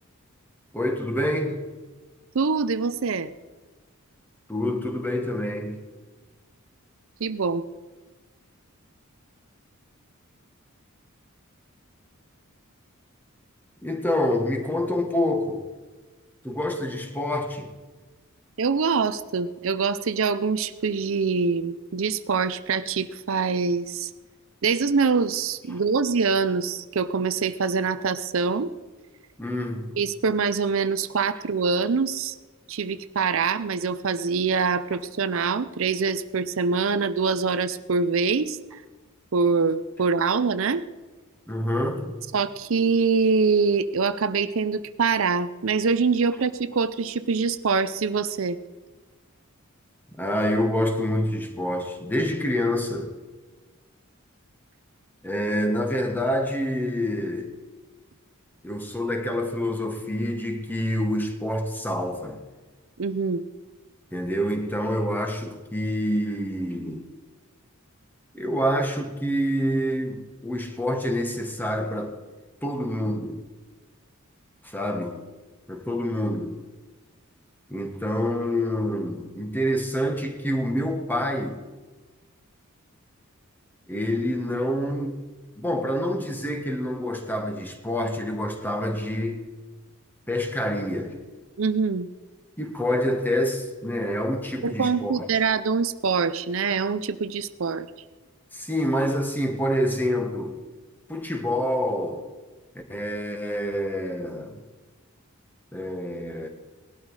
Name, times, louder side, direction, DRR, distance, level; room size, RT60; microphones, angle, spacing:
voice 1, 0.7-1.6 4.5-5.8 13.8-15.6 16.4-17.7 25.7-25.8 29.4-29.9 41.5-42.2 50.2-53.1 55.2-57.5 58.6-62.4 64.1-67.1 68.3-72.1 72.6-73.4 74.6-75.2 75.7-76.6 77.7-81.6 83.9-85.2 85.6-89.4 90.3-91.2 92.6-95.3 98.5-100.6 101.1-102.3 102.9-104.6 105.7-106.5, equal, 10° left, 4 dB, 1.5 m, -27 dB
voice 2, 2.3-3.3 7.2-7.6 18.6-24.1 24.6-28.7 30.0-32.4 32.7-38.6 39.3-40.8 42.3-48.6 63.0-63.4 91.6-92.1 94.6-97.9, right 5 dB, 65° right, 12 dB, 0.6 m, -24 dB
18.5 x 12.0 x 4.8 m, 1.3 s
head